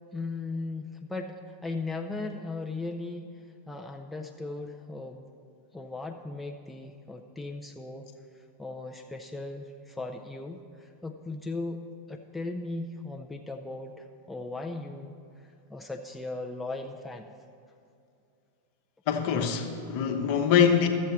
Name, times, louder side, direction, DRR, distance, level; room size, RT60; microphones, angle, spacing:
voice 1, 0.1-3.3 3.7-5.3 5.7-8.1 8.6-11.8 12.1-15.2 15.7-17.3, left 2 dB, 5° left, 1 dB, 0.5 m, -37 dB
voice 2, 19.1-20.9, left 7 dB, 45° left, 4 dB, 0.9 m, -24 dB
13.5 x 7.3 x 4.4 m, 2.5 s
figure-of-eight pair, 90°, 0 cm